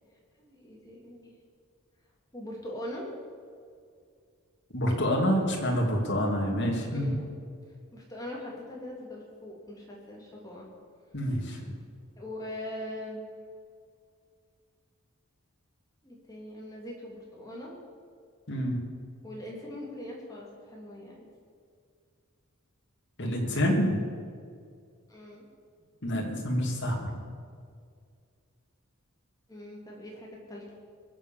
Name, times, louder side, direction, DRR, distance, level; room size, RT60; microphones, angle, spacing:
voice 1, 0.4-1.3 2.3-3.1 6.9-7.2 7.9-10.7 12.2-13.2 16.0-17.7 19.2-21.3 25.1-25.4 29.5-30.6, left 1 dB, 15° left, -3 dB, 3.1 m, -41 dB
voice 2, 4.7-7.2 11.1-11.7 18.5-18.9 23.2-24.0 26.0-27.2, equal, 55° left, 0 dB, 2.7 m, -27 dB
22.0 x 7.5 x 7.2 m, 2.2 s
head